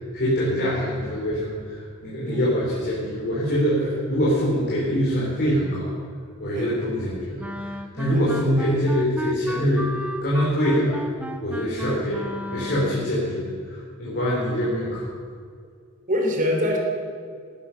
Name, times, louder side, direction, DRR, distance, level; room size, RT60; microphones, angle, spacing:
voice 1, 0.1-3.8 4.1-5.9 6.4-11.0 11.4-15.0, equal, 50° left, -6 dB, 3.7 m, -24 dB
Wind instrument woodwind instrument, 7.4-13.1, equal, 5° right, 0.7 m, -33 dB
voice 2, 16.1-16.8, left 1 dB, 40° right, 0 dB, 3.4 m, -24 dB
17.5 x 12.5 x 5.8 m, 2.2 s
head